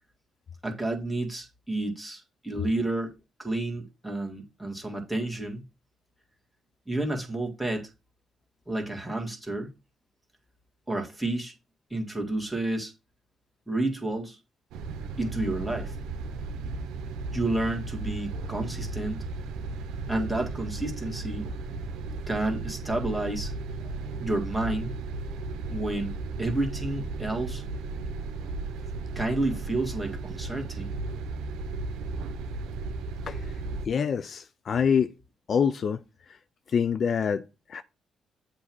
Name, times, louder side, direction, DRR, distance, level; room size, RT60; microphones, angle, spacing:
voice 1, 0.6-5.6 6.9-7.9 8.7-9.7 10.9-11.5 11.9-12.9 13.7-14.4 15.2-15.9 17.3-19.2 20.1-21.5 22.3-23.5 24.2-24.9 25.7-26.1 26.4-27.6 29.2-30.9, right 2 dB, 5° right, 1.8 m, -30 dB
sound 1, 14.7-33.9, right 3 dB, 90° right, 0.7 m, -35 dB
voice 2, 33.8-35.1 35.5-36.0 36.3-36.4 36.7-37.8, left 7 dB, 55° left, 0.4 m, -26 dB
7.7 x 2.8 x 6.0 m
cardioid pair, 85°, 0 cm